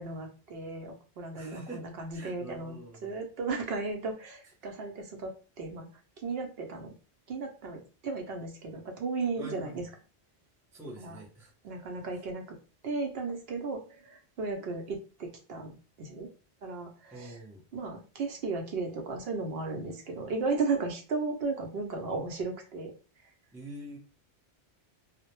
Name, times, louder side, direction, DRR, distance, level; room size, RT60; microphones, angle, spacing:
voice 1, 0.0-2.8 3.0-5.3 5.6-5.9 6.2-6.9 7.3-9.8 11.0-11.2 11.6-12.6 12.8-16.3 16.6-17.4 17.7-22.9, right 3 dB, 70° right, 3 dB, 0.7 m, -35 dB
voice 2, 1.3-1.8 2.1-3.2 9.4-9.9 10.7-11.5 17.1-17.6 23.5-24.0, right 2 dB, 5° right, -3 dB, 0.5 m, -45 dB
2.1 x 2.0 x 2.9 m, 0.36 s
omnidirectional pair, 1.1 m